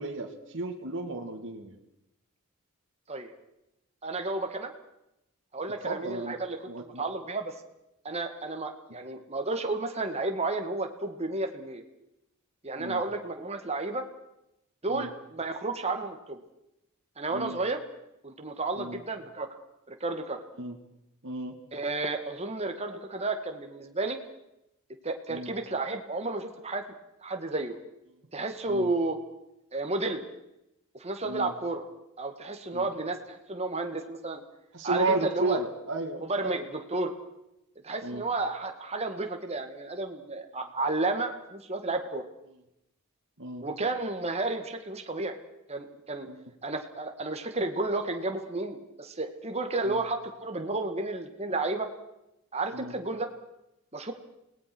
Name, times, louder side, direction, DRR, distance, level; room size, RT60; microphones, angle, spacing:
voice 1, 0.0-1.7 5.8-6.4 6.7-7.0 12.8-13.0 14.9-15.1 17.3-17.6 18.8-19.0 20.6-20.8 21.2-21.6 25.3-25.5 28.7-28.9 31.2-31.5 32.7-32.9 34.7-36.6 38.0-38.2 43.4-43.6 46.3-46.4 49.8-50.0 52.7-52.9, right 3 dB, 60° right, 2 dB, 2.3 m, -33 dB
voice 2, 4.0-4.7 5.5-7.5 8.0-11.8 12.6-14.0 14.8-16.4 17.2-17.8 18.2-19.5 19.9-20.4 21.7-24.2 25.0-26.9 27.2-27.8 28.3-29.2 29.7-30.2 31.0-31.9 32.2-34.4 34.8-35.6 36.3-37.1 37.8-42.2 43.6-45.4 45.7-46.3 46.6-51.9 52.5-53.3 53.9-54.1, right 2 dB, 30° right, 5 dB, 2.1 m, -32 dB
29.0 x 19.0 x 6.2 m, 0.87 s
head